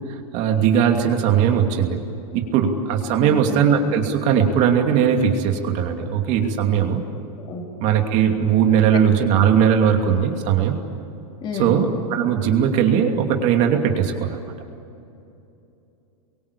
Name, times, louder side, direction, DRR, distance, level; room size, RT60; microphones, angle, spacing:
voice 1, 0.3-2.0 2.3-7.0 7.8-10.8 11.5-14.5, right 8 dB, 35° right, 3 dB, 2.7 m, -19 dB
voice 2, 3.2-3.7 7.1-7.6 11.4-11.8, left 4 dB, 25° left, 2 dB, 3.4 m, -31 dB
28.5 x 23.5 x 8.5 m, 2.8 s
supercardioid pair, 150°, 20 cm